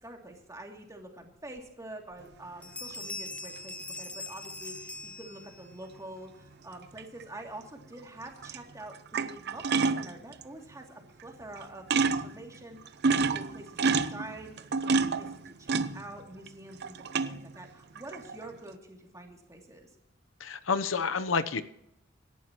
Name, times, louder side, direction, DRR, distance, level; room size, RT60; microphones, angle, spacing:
voice 1, 0.0-19.9, right 1 dB, 15° right, 1 dB, 2.7 m, -46 dB
Bell, 1.6-1.7 2.1-2.4 2.6-5.8, left 2 dB, 5° left, 0.6 m, -41 dB
sound 1, 2.9-3.0 7.0-7.2 8.2-8.6 8.9-10.4 11.2-11.3 11.6-11.7 11.9-12.4 12.8-16.5 16.8-17.5 18.0-18.5, right 4 dB, 55° right, 0.7 m, -28 dB
voice 2, 20.4-21.6, left 5 dB, 70° left, 12 dB, 0.8 m, -29 dB
26.0 x 11.5 x 3.0 m, 0.82 s
head